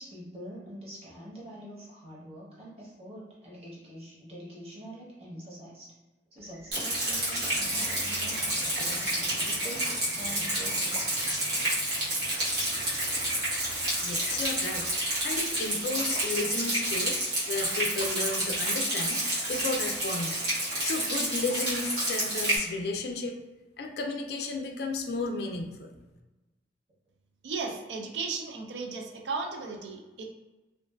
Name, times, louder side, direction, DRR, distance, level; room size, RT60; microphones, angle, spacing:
voice 1, 0.0-5.9 6.3-11.1, equal, 35° right, -6 dB, 0.8 m, -45 dB
sound 1, 6.4-15.7, equal, 15° right, 0.4 m, -45 dB
Rain, 6.7-22.6, right 1 dB, 65° right, 1.0 m, -29 dB
voice 2, 14.0-20.4 20.8-23.4 23.8-25.9, left 3 dB, 60° left, 3 dB, 0.3 m, -33 dB
voice 3, 27.4-30.2, right 4 dB, 85° right, 2 dB, 0.4 m, -35 dB
2.5 x 2.2 x 2.2 m, 1.1 s
head